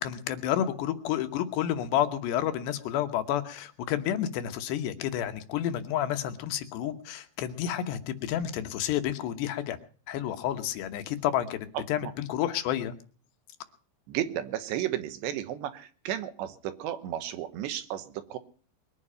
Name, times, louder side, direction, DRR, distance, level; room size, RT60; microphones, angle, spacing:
voice 1, 0.0-9.8 10.1-12.9, left 11 dB, 75° left, 8 dB, 3.1 m, -30 dB
voice 2, 14.1-18.4, right 12 dB, 75° right, 11 dB, 3.3 m, -33 dB
22.0 x 10.0 x 5.6 m, 0.42 s
omnidirectional pair, 5.2 m